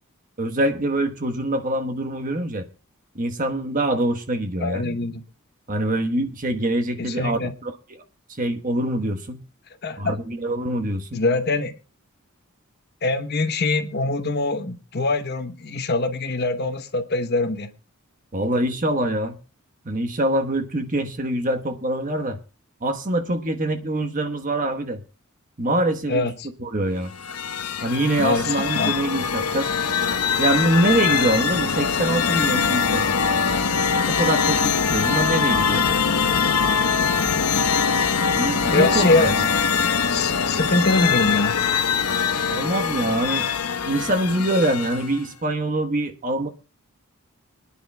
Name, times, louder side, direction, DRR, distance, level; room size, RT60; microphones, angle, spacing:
voice 1, 0.4-2.7 3.1-4.8 5.7-7.7 8.4-9.4 10.0-11.2 18.3-19.4 19.8-22.4 22.8-25.0 25.6-26.3 26.6-27.1 27.8-29.7 30.4-33.0 34.1-35.8 38.3-39.3 42.5-43.5 43.8-46.5, right 1 dB, 35° right, 1.2 m, -24 dB
voice 2, 4.6-5.2 7.0-7.5 9.8-10.2 11.1-11.7 13.0-17.7 26.1-26.5 28.2-28.9 38.6-39.4 40.1-41.6, left 2 dB, 45° left, 1.0 m, -23 dB
sound 1, 27.1-45.2, left 6 dB, 85° left, 1.1 m, -22 dB
26.0 x 10.0 x 2.2 m
head